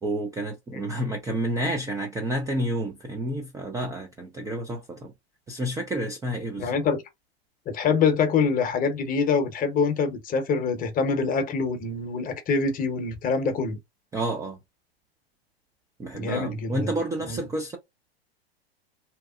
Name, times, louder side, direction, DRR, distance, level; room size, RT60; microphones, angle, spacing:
voice 1, 0.0-5.1 5.5-6.8 14.1-14.6 16.0-17.8, right 1 dB, 10° right, 0.4 m, -30 dB
voice 2, 6.6-7.0 7.7-13.8 16.1-16.9 17.2-17.4, left 5 dB, 25° left, 0.8 m, -25 dB
2.8 x 2.0 x 2.4 m
hypercardioid pair, 105°, 32 cm